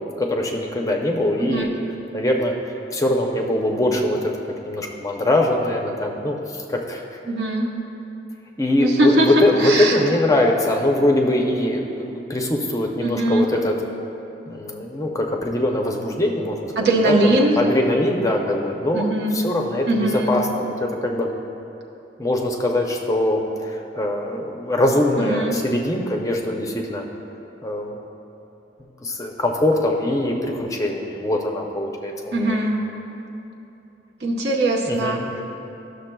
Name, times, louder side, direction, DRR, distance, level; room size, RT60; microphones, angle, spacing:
voice 1, 0.2-1.7 2.1-4.3 4.7-7.2 8.6-13.7 14.5-19.1 19.3-21.3 22.2-27.0 27.6-28.0 29.0-32.6 34.9-35.3, left 1 dB, 20° left, 1 dB, 0.5 m, -22 dB
voice 2, 1.4-1.7 7.3-7.7 8.8-10.0 13.0-13.5 16.8-17.6 18.9-19.4 19.9-20.3 25.2-25.6 32.3-32.8 34.2-35.4, right 1 dB, 65° right, -1 dB, 0.9 m, -21 dB
13.0 x 6.5 x 2.2 m, 2.9 s
head